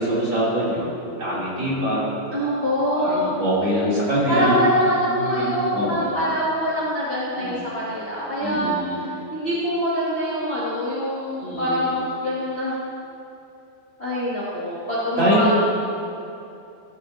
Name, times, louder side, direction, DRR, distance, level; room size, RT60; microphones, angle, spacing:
voice 1, 0.0-2.1 2.9-4.7 5.0-6.1 7.3-7.6 8.4-9.0 11.4-11.9 15.2-15.5, equal, 30° right, -9 dB, 3.3 m, -24 dB
voice 2, 2.3-3.3 4.3-8.7 9.0-12.7 14.0-15.5, equal, 40° left, -9 dB, 0.9 m, -24 dB
17.0 x 13.0 x 2.9 m, 2.7 s
omnidirectional pair, 5.6 m